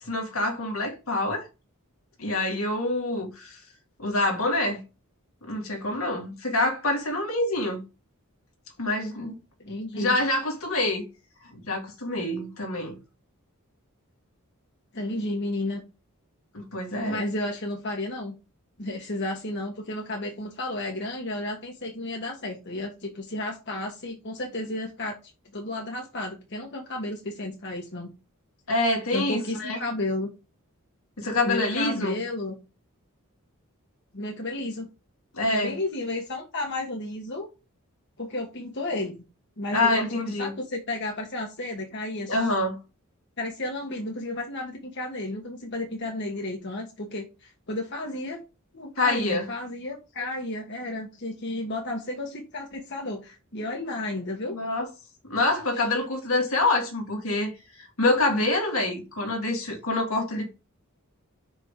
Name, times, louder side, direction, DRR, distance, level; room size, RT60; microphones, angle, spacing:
voice 1, 0.0-1.5 2.2-3.6 4.0-4.8 5.4-7.8 8.8-9.4 9.9-11.0 11.5-13.0 16.5-17.2 28.7-29.8 31.2-32.2 35.3-35.7 39.7-40.5 42.3-42.8 49.0-49.5 54.5-54.9 55.3-57.5 57.8-60.5, left 2 dB, 70° left, 2.1 m, -26 dB
voice 2, 9.6-10.2 14.9-15.8 16.9-18.4 18.8-25.2 25.5-28.1 29.1-30.3 31.4-32.5 34.1-34.9 35.5-37.5 38.2-39.2 39.6-40.1 40.4-42.5 43.4-48.4 48.7-54.5 55.7-55.9, left 2 dB, 55° left, 1.4 m, -32 dB
5.9 x 5.2 x 3.8 m
head